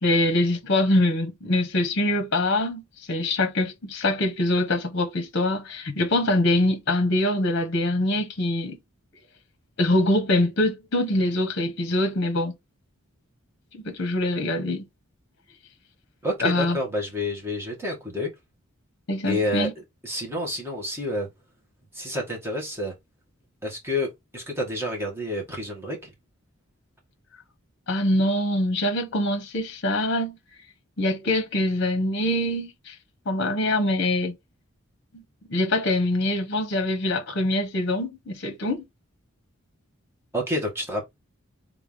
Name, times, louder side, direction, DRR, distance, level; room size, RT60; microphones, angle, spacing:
voice 1, 0.0-2.8 3.1-8.8 9.8-12.5 13.7-14.9 16.4-16.8 19.1-19.7 27.9-30.4 31.0-32.9 33.3-34.3 35.1-35.2 35.5-38.8, left 1 dB, 55° left, 0.9 m, -24 dB
voice 2, 16.2-18.3 19.2-19.7 20.0-21.3 21.9-22.9 23.6-26.1 40.3-41.0, left 1 dB, 10° right, 1.6 m, -29 dB
3.6 x 3.5 x 3.5 m
head